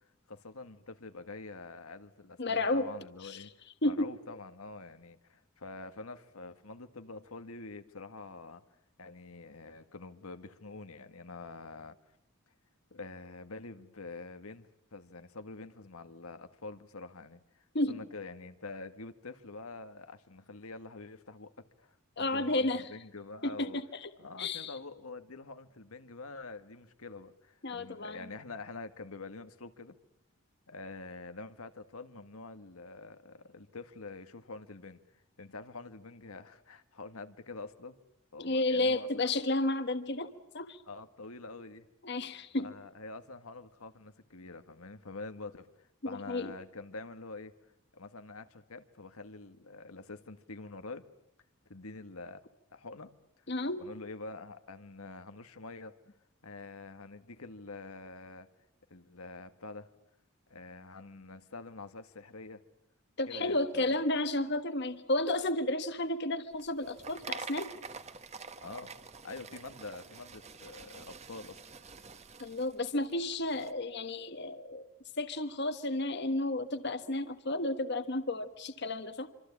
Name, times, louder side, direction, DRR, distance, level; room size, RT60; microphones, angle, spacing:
voice 1, 0.3-3.5 3.8-8.6 9.0-12.0 12.9-23.8 24.2-30.0 30.7-35.0 35.4-38.0 38.3-39.1 40.9-41.9 42.6-47.5 47.9-51.0 51.7-52.4 52.7-53.1 53.8-55.9 56.4-58.5 58.9-59.9 60.5-62.6 63.3-64.0 68.6-68.9 69.2-71.6, left 3 dB, 90° left, 9 dB, 1.7 m, -46 dB
voice 2, 2.4-2.9 3.2-3.4 3.8-4.1 17.7-18.0 22.2-22.8 23.4-24.1 24.4-24.8 27.6-28.3 38.4-40.3 40.5-40.8 42.0-42.7 46.0-46.5 53.5-53.9 63.2-67.7 72.4-74.9 75.2-79.3, left 2 dB, 50° left, 10 dB, 1.4 m, -32 dB
sound 1, 66.5-73.7, right 5 dB, 30° right, 1.4 m, -46 dB
26.5 x 26.0 x 8.6 m, 0.81 s
head